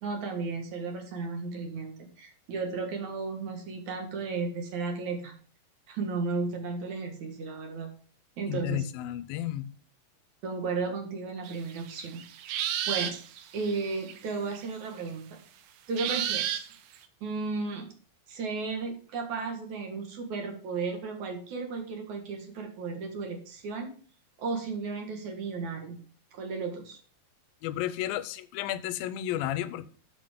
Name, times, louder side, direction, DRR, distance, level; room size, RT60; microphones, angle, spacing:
voice 1, 0.0-5.3 5.9-7.9 8.4-8.9 10.4-13.2 13.5-15.4 15.9-16.7 17.2-18.0 18.3-23.9 24.4-26.0 26.3-27.0, right 4 dB, 60° right, 2.9 m, -34 dB
voice 2, 8.5-9.7 27.6-29.9, left 13 dB, 90° left, 2.5 m, -32 dB
sound 1, 11.4-14.2 14.5-14.6 15.0-15.1 16.0-17.0, right 10 dB, 90° right, 2.7 m, -32 dB
11.5 x 5.2 x 5.1 m
omnidirectional pair, 4.1 m